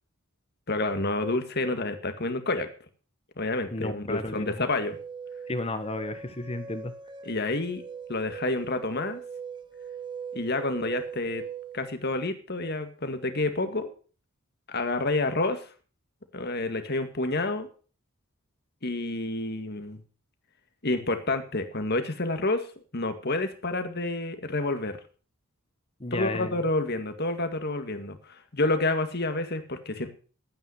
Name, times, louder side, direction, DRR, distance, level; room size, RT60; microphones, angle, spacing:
voice 1, 0.7-2.7 3.4-5.0 7.2-7.8 8.1-9.2 10.3-11.4 11.7-13.9 14.7-15.6 16.3-17.7 18.8-20.0 20.8-22.6 22.9-25.0 26.1-30.1, left 2 dB, 50° left, 8 dB, 2.0 m, -29 dB
voice 2, 3.7-4.7 5.5-6.9 26.0-26.6, left 2 dB, 25° left, 9 dB, 1.3 m, -33 dB
sound 1, 4.7-11.9, right 6 dB, 20° right, 0.6 m, -40 dB
13.0 x 9.2 x 6.5 m, 0.39 s
head